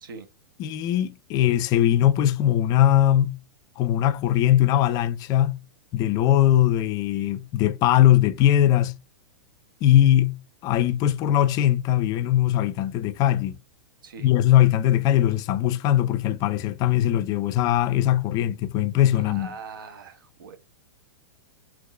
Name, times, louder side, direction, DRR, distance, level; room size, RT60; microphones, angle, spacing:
voice 1, 0.6-3.4 3.8-5.6 5.9-8.9 9.8-10.4 10.6-13.5 14.2-19.5, left 12 dB, 35° left, 0.3 m, -20 dB
voice 2, 14.0-14.3 19.1-20.6, right 5 dB, 70° right, 0.8 m, -41 dB
3.5 x 2.9 x 2.3 m
hypercardioid pair, 110°, 11 cm